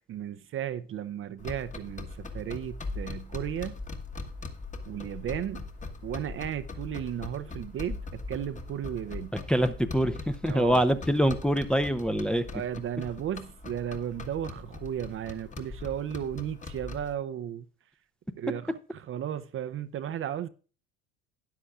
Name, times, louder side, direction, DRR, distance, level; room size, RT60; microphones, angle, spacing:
voice 1, 0.1-3.8 4.9-5.7 6.0-9.3 10.5-10.8 12.5-17.7 18.4-18.6 18.9-20.5, right 10 dB, 35° right, 0.6 m, -34 dB
sound 1, 1.4-17.1, left 3 dB, 20° left, 1.4 m, -41 dB
voice 2, 9.3-12.5, equal, ahead, 0.6 m, -25 dB
13.0 x 9.9 x 2.4 m
hypercardioid pair, 75°, 36 cm